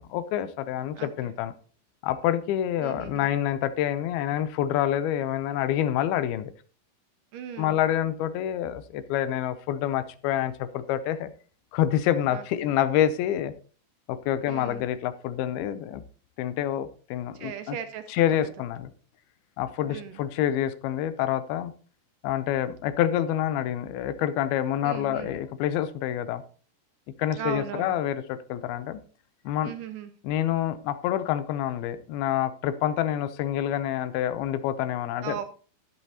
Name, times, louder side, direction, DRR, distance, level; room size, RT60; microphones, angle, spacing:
voice 1, 0.0-1.5 2.0-6.5 7.6-11.3 11.7-13.5 14.1-16.0 16.4-17.8 18.1-18.9 19.6-21.7 22.2-26.4 27.2-29.0 29.5-29.7 30.2-35.4, left 11 dB, 85° left, 13 dB, 2.7 m, -27 dB
voice 2, 1.0-1.3 2.8-3.3 7.3-7.8 12.3-12.7 14.5-14.9 17.3-18.1 19.9-20.2 24.8-25.4 27.4-28.0 29.6-30.1 35.2-35.5, right 10 dB, 75° right, 9 dB, 2.0 m, -37 dB
11.5 x 10.5 x 2.8 m, 0.40 s
omnidirectional pair, 4.3 m